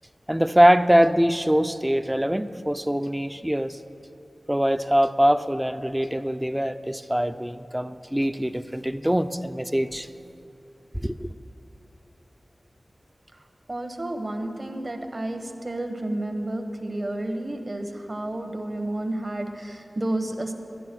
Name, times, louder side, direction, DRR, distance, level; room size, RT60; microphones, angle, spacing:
voice 1, 0.3-3.8 4.5-10.1 10.9-11.3, equal, 10° right, 11 dB, 0.4 m, -23 dB
voice 2, 13.7-20.5, right 1 dB, 45° right, 5 dB, 1.1 m, -31 dB
12.0 x 10.0 x 6.1 m, 2.7 s
wide cardioid pair, 60°, 0 cm